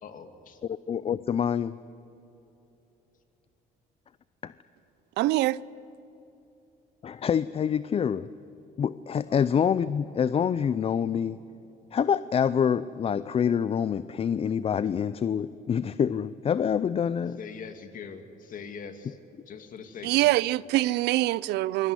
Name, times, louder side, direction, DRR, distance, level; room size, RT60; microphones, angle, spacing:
voice 1, 0.0-0.6 9.3-9.4 17.4-19.2 19.5-20.3, left 6 dB, 50° left, 2.5 m, -42 dB
voice 2, 0.6-1.8 4.4-4.5 7.0-8.3 8.8-11.4 11.9-17.4, left 7 dB, 35° left, 0.5 m, -26 dB
voice 3, 5.2-5.6 20.0-21.9, right 17 dB, 80° right, 0.5 m, -24 dB
24.5 x 20.0 x 9.9 m
cardioid pair, 110°, 17 cm